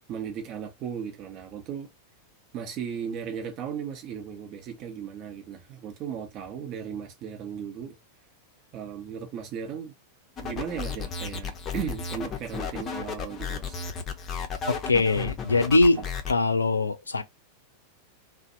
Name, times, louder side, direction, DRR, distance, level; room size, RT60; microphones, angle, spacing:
voice 1, 0.1-1.9 2.5-7.9 8.7-9.9 10.4-13.8, right 8 dB, 35° right, 0.9 m, -36 dB
sound 1, 10.4-16.3, left 5 dB, 25° left, 0.6 m, -34 dB
voice 2, 14.7-16.0 16.3-17.2, left 3 dB, 75° left, 0.4 m, -22 dB
2.6 x 2.1 x 2.6 m
figure-of-eight pair, 90°, 0 cm